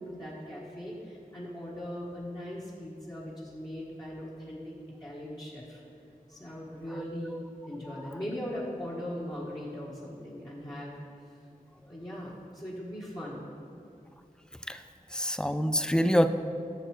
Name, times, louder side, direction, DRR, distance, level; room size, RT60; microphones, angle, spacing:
voice 1, 0.0-4.7 5.0-5.8 6.3-10.9 11.5-11.6 11.9-13.5, equal, 25° left, -8 dB, 1.5 m, -39 dB
voice 2, 15.1-16.3, equal, 5° left, 10 dB, 0.4 m, -25 dB
13.0 x 6.6 x 3.3 m, 2.5 s
wide cardioid pair, 55°, 15 cm